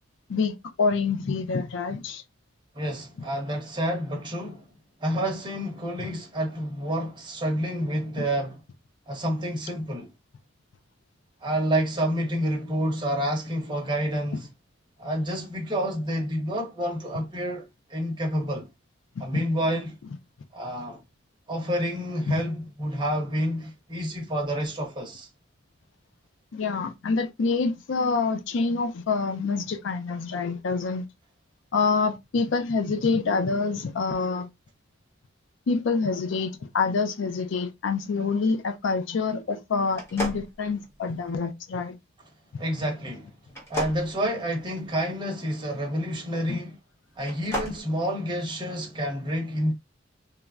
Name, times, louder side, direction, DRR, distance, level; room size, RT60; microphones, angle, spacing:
voice 1, 0.3-2.2 6.0-6.1 19.2-19.4 22.3-22.4 26.5-31.0 31.7-34.5 35.7-42.0 42.5-42.6 46.5-46.6, left 4 dB, 65° left, 0.4 m, -26 dB
voice 2, 2.7-4.7 5.0-8.6 9.1-10.1 11.4-14.5 15.0-18.7 19.2-19.9 20.5-21.0 21.5-25.3 42.6-43.3 43.7-46.8 47.2-49.7, equal, 25° right, 0.9 m, -29 dB
sound 1, 39.9-41.3 43.5-45.1 47.1-47.8, equal, 15° left, 0.9 m, -33 dB
3.2 x 2.2 x 2.3 m
head